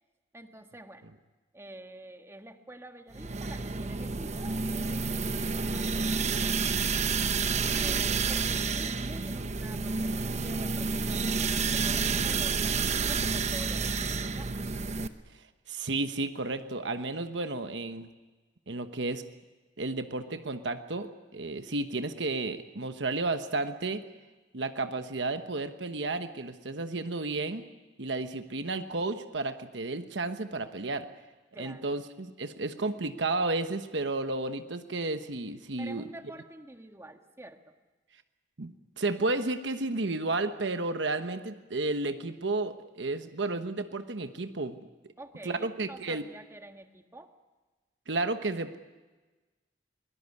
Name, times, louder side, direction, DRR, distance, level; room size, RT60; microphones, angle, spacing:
voice 1, 0.3-1.1 1.5-6.1 6.4-6.9 7.7-14.5 31.5-31.9 35.8-37.7 45.2-47.4, right 1 dB, 15° right, 5 dB, 1.6 m, -48 dB
sound 1, 3.1-15.1, right 4 dB, 40° right, 0.9 m, -29 dB
voice 2, 15.7-18.1 18.7-19.2 19.8-24.0 24.5-27.6 28.0-31.1 31.6-36.0 38.6-44.8 45.4-46.2 48.1-48.8, right 2 dB, 80° right, 8 dB, 1.2 m, -32 dB
22.5 x 18.0 x 9.8 m, 1.3 s
head